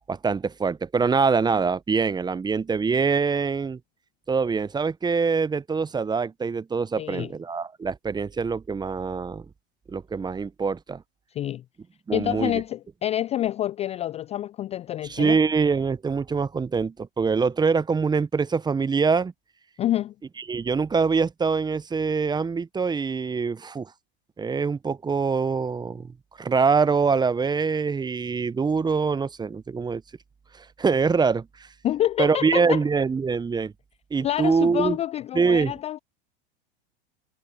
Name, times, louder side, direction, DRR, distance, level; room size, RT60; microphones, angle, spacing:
voice 1, 0.1-3.8 4.3-9.4 9.9-11.0 12.1-12.6 15.1-19.3 20.5-23.9 24.4-30.0 30.5-31.7 32.2-33.7 34.1-35.0 35.3-35.7, right 5 dB, 15° right, 0.9 m, -24 dB
voice 2, 7.0-7.3 11.3-11.6 12.1-15.4 19.8-20.1 31.8-32.8 34.2-36.0, left 12 dB, 20° left, 0.4 m, -27 dB
hypercardioid pair, 90°, 30 cm